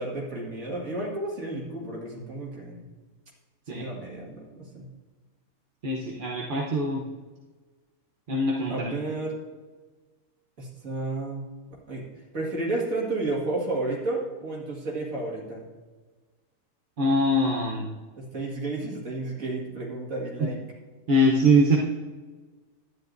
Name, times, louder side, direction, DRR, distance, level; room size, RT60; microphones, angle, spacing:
voice 1, 0.0-2.8 3.7-4.9 8.7-9.4 10.6-11.5 11.9-12.1 12.3-15.6 18.2-20.6, right 2 dB, 75° right, -3 dB, 2.4 m, -32 dB
voice 2, 5.8-7.0 8.3-8.9 17.0-17.9 20.4-20.5 21.1-21.8, right 1 dB, 40° right, -3 dB, 1.0 m, -23 dB
12.0 x 10.0 x 2.6 m, 1.3 s
omnidirectional pair, 1.5 m